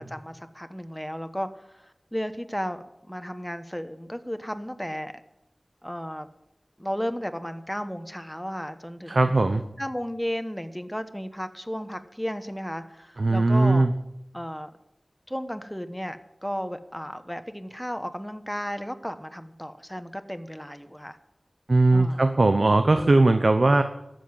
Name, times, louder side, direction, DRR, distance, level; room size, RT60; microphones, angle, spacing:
voice 1, 0.0-5.1 5.8-6.3 6.8-9.3 9.8-13.9 14.3-14.7 15.3-21.2 21.9-22.2 22.9-23.1, equal, 5° left, 9 dB, 1.2 m, -34 dB
voice 2, 9.1-9.6 13.2-13.9 21.7-23.8, right 2 dB, 65° right, 8 dB, 0.8 m, -19 dB
12.5 x 7.9 x 8.9 m, 0.87 s
wide cardioid pair, 50°, 0 cm